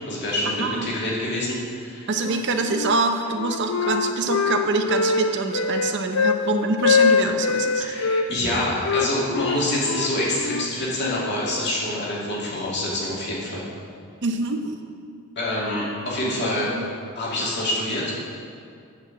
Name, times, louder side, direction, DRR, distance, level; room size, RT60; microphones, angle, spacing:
voice 1, 0.1-2.1 7.8-13.7 15.4-16.7 17.2-18.2, left 1 dB, 50° left, -6 dB, 2.4 m, -26 dB
voice 2, 0.6-0.9 2.1-7.9 14.2-14.6 16.7-16.9, right 3 dB, 50° right, 5 dB, 0.6 m, -25 dB
Wind instrument woodwind instrument, 2.2-3.0 3.3-6.4 6.8-8.3 8.8-11.3, left 5 dB, 65° left, 0.4 m, -23 dB
9.5 x 4.9 x 7.2 m, 2.3 s
head